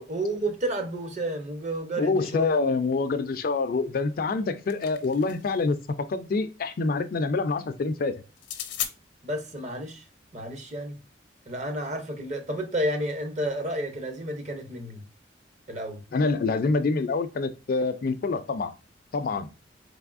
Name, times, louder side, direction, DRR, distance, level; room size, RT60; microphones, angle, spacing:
voice 1, 0.1-2.5 9.2-10.0 10.3-11.0 11.5-15.0 15.7-16.0, right 1 dB, 40° right, 0.7 m, -31 dB
voice 2, 2.0-8.2 16.1-18.7 19.1-19.5, left 3 dB, 50° left, 0.4 m, -26 dB
sound 1, 4.3-5.6 8.4-8.9, left 10 dB, 80° left, 0.7 m, -35 dB
3.8 x 3.4 x 2.3 m
head